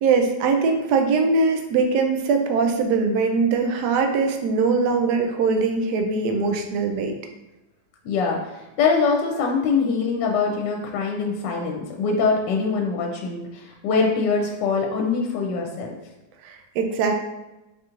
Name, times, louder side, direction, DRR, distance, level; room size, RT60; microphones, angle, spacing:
voice 1, 0.0-7.1 16.4-17.1, right 4 dB, 75° right, 4 dB, 1.1 m, -21 dB
voice 2, 8.0-16.0, left 4 dB, 80° left, 1 dB, 1.2 m, -23 dB
4.6 x 2.4 x 2.9 m, 1.0 s
omnidirectional pair, 1.9 m